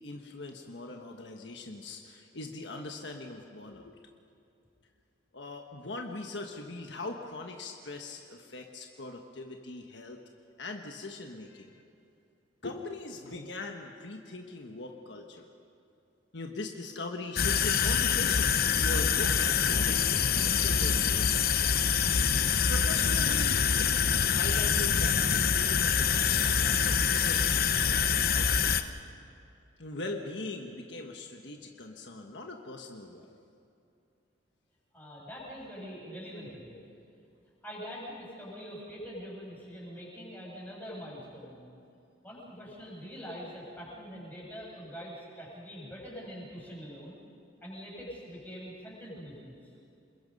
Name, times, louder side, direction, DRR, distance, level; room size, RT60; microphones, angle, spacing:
voice 1, 0.0-4.1 5.3-10.2 10.6-11.8 12.6-15.5 16.3-21.4 22.7-28.7 29.8-33.3, left 2 dB, 70° left, 2 dB, 1.4 m, -41 dB
sound 1, 17.4-28.8, left 7 dB, 50° left, 0.9 m, -25 dB
voice 2, 34.9-36.8 37.6-41.7 42.2-47.2 47.6-49.7, equal, 10° left, -6 dB, 7.2 m, -44 dB
27.5 x 21.5 x 5.4 m, 2.6 s
head